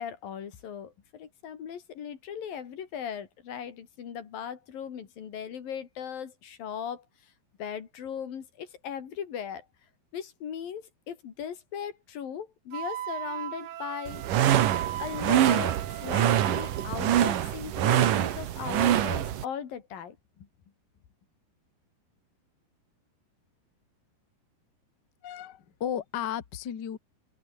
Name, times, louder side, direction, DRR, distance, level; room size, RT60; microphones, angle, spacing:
voice 1, 0.0-7.1 7.6-9.7 10.1-14.2 15.0-20.5, left 8 dB, 60° left, 4.3 m, -38 dB
Wind instrument woodwind instrument, 12.7-16.9, right 12 dB, 85° right, 1.5 m, -37 dB
sound 1, 14.1-19.4, right 11 dB, 60° right, 2.8 m, -25 dB
voice 2, 25.2-27.0, left 9 dB, 85° left, 0.9 m, -34 dB
open air
omnidirectional pair, 4.9 m